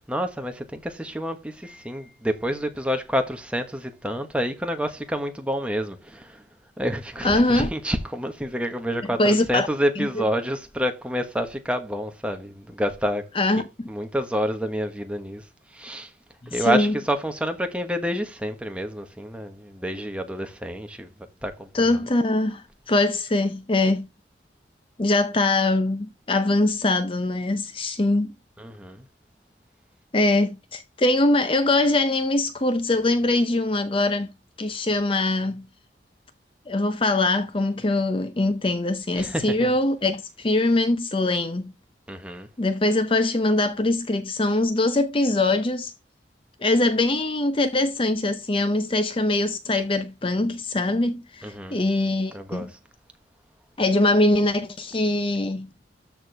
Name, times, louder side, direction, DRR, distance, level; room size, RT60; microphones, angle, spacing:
voice 1, 0.0-6.4 6.8-13.2 13.8-15.4 15.7-16.1 16.5-21.1 21.4-21.9 28.6-29.0 39.2-39.7 42.1-42.5 51.4-51.8 52.3-52.8, equal, 5° right, 1.2 m, -28 dB
voice 2, 7.2-7.7 9.2-9.7 10.0-10.2 13.3-13.9 16.5-17.0 21.7-24.1 25.0-28.3 30.1-34.3 34.6-35.7 36.7-41.7 42.6-45.9 46.6-52.7 53.8-55.7, left 2 dB, 30° left, 0.6 m, -22 dB
13.0 x 4.5 x 3.3 m
head